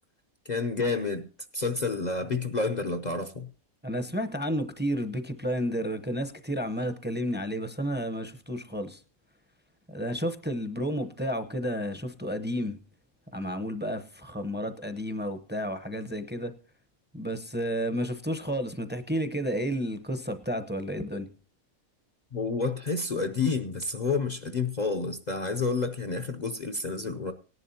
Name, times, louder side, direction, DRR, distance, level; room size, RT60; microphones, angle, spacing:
voice 1, 0.4-1.3 1.5-3.5 22.3-27.3, left 4 dB, 45° left, 0.6 m, -29 dB
voice 2, 3.8-9.0 9.9-12.8 13.3-16.5 17.1-21.3, equal, 10° right, 0.6 m, -31 dB
18.5 x 11.0 x 2.8 m
omnidirectional pair, 1.4 m